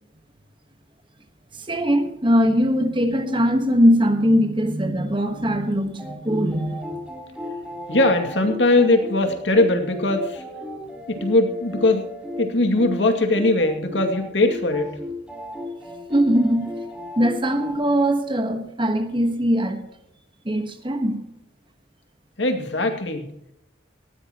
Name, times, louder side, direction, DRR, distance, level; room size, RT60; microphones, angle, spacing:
voice 1, 1.5-7.0 16.1-16.8 17.2-19.8 20.4-21.2, equal, 25° right, 1.4 m, -21 dB
sound 1, 6.0-17.7, left 1 dB, 5° right, 3.4 m, -35 dB
voice 2, 7.9-10.4 11.1-12.0 12.4-14.9 22.4-23.3, left 2 dB, 70° left, 2.4 m, -20 dB
19.0 x 15.5 x 3.0 m
head